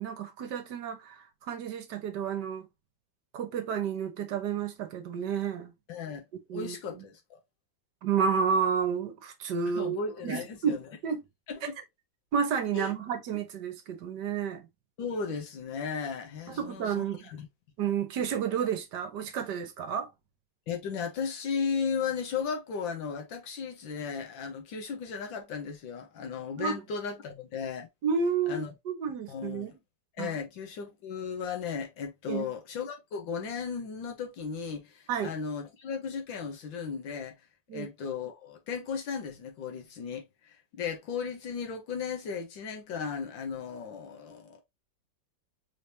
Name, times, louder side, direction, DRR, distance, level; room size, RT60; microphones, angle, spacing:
voice 1, 0.0-2.7 3.3-5.7 6.5-6.8 8.0-10.0 10.2-11.2 12.3-14.7 16.5-17.2 17.8-20.1 26.6-26.8 28.0-29.7 30.2-30.3 32.3-32.5 35.1-35.3 37.7-37.9, right 7 dB, 65° right, 1.4 m, -31 dB
voice 2, 5.9-6.2 6.5-7.4 9.8-10.8 11.5-11.7 12.7-12.9 15.0-17.5 20.7-27.9 28.5-28.7 29.3-29.8 30.2-37.4 37.7-44.6, left 6 dB, 85° left, 1.8 m, -35 dB
4.9 x 3.4 x 2.7 m
omnidirectional pair, 2.0 m